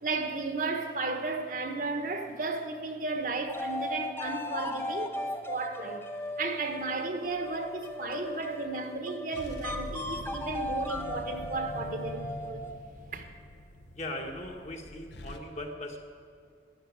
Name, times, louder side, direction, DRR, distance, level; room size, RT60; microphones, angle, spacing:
voice 1, 0.0-6.0 6.4-12.7 13.1-13.2, right 3 dB, 45° right, 1.2 m, -34 dB
sound 1, 3.5-12.9, left 1 dB, 10° left, 0.7 m, -37 dB
sound 2, 7.3-7.9 9.3-15.4, left 1 dB, 65° left, 1.3 m, -44 dB
voice 2, 13.9-16.0, left 1 dB, 35° left, 1.6 m, -39 dB
12.5 x 11.0 x 9.4 m
head